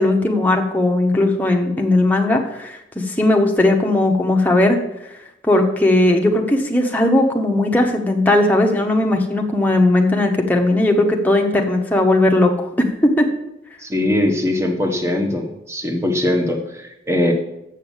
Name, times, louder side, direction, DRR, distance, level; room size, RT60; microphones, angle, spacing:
voice 1, 0.0-4.8 5.4-12.7 13.0-13.3, left 1 dB, 10° left, 1 dB, 1.0 m, -17 dB
voice 2, 13.8-17.3, left 1 dB, 15° right, 2 dB, 1.2 m, -21 dB
7.3 x 6.7 x 7.3 m, 0.86 s
head